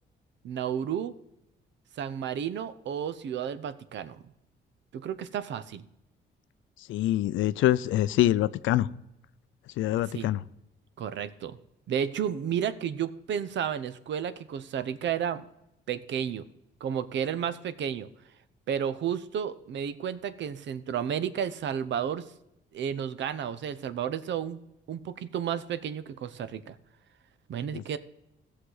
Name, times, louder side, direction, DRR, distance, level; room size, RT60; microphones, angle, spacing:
voice 1, 0.4-1.1 2.0-4.2 4.9-5.9 10.1-10.3 11.0-11.6 11.9-15.4 15.9-16.4 16.8-18.1 18.7-22.3 22.7-24.6 24.9-26.8 27.5-28.0, right 8 dB, 65° right, 14 dB, 0.7 m, -32 dB
voice 2, 6.9-8.9 9.8-10.4 27.7-27.8, left 14 dB, 80° left, 16 dB, 0.5 m, -25 dB
16.0 x 6.4 x 3.9 m, 0.87 s
cardioid pair, 90°, 20 cm